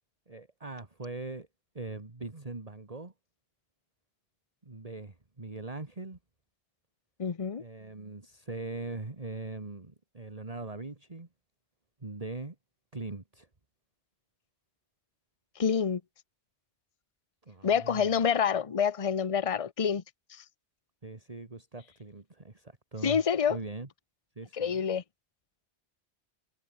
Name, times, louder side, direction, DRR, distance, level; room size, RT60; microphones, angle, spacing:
voice 1, 0.3-1.5 1.7-3.1 4.6-6.2 7.6-11.3 12.0-12.6 12.9-13.5 17.4-18.2 21.0-23.2 23.5-23.9 24.4-24.9, right 3 dB, 30° right, 2.1 m, -41 dB
voice 2, 7.2-7.6 15.6-16.0 17.6-20.0 20.3-20.4 23.0-23.6 24.5-25.0, left 7 dB, 35° left, 0.9 m, -27 dB
omnidirectional pair, 1.2 m